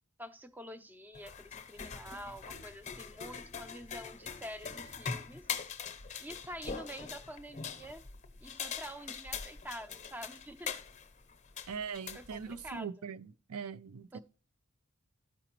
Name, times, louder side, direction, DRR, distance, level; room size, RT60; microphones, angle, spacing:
voice 1, 0.2-5.5 6.2-8.0 8.4-10.7 12.1-12.9 14.1-14.2, equal, 10° right, 0.5 m, -47 dB
sound 1, 1.1-12.8, left 6 dB, 35° left, 0.7 m, -43 dB
voice 2, 11.7-14.2, right 6 dB, 90° right, 0.5 m, -41 dB
13.5 x 5.0 x 3.0 m
head